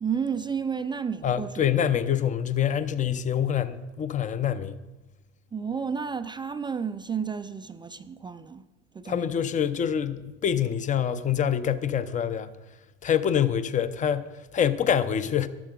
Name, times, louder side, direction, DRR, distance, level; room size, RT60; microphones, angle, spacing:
voice 1, 0.0-1.5 5.5-8.6 8.9-9.3, right 6 dB, 15° right, 0.3 m, -31 dB
voice 2, 1.2-4.8 9.1-12.5 13.0-15.5, left 9 dB, 25° left, 0.6 m, -26 dB
13.5 x 11.0 x 3.7 m
hypercardioid pair, 90°, 33 cm